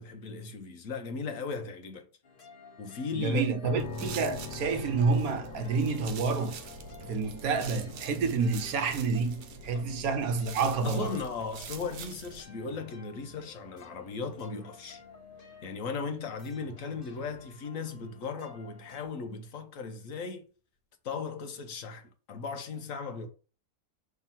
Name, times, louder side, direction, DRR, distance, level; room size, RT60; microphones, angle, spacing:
voice 1, 0.0-2.1 2.8-3.4 9.7-9.8 10.8-15.0 15.6-20.4 21.0-23.3, left 5 dB, 55° left, 1.3 m, -37 dB
sound 1, 2.2-19.0, left 4 dB, 35° left, 1.2 m, -53 dB
voice 2, 3.2-6.6 7.0-11.1, right 4 dB, 65° right, 1.3 m, -29 dB
sound 2, 3.6-17.4, left 3 dB, 80° left, 1.4 m, -48 dB
sound 3, 3.8-12.4, right 6 dB, 90° right, 1.4 m, -45 dB
5.8 x 3.6 x 5.7 m
omnidirectional pair, 1.7 m